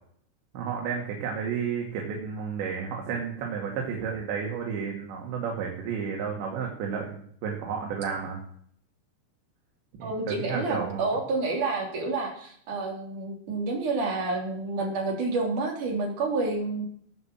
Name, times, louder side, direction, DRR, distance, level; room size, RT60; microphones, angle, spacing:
voice 1, 0.5-8.4 10.0-11.0, right 6 dB, 80° right, 0 dB, 4.4 m, -32 dB
voice 2, 10.0-16.9, right 3 dB, 50° right, 1 dB, 4.3 m, -29 dB
18.0 x 7.5 x 7.6 m, 0.63 s
omnidirectional pair, 5.1 m